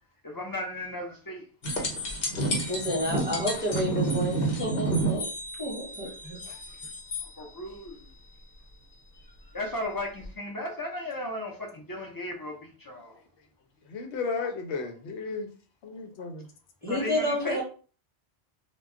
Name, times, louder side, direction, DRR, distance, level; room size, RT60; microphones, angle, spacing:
voice 1, 0.2-1.4 7.4-8.1 9.5-13.1 16.9-17.6, left 1 dB, 30° left, 0.4 m, -35 dB
sound 1, 1.6-7.3 10.2-10.3, right 2 dB, 60° left, 1.0 m, -30 dB
voice 2, 2.7-5.3 5.6-6.6 16.8-17.6, equal, 10° right, 0.9 m, -30 dB
voice 3, 13.9-15.5 15.8-16.5, left 4 dB, 85° left, 0.9 m, -34 dB
2.2 x 2.2 x 3.6 m
omnidirectional pair, 1.1 m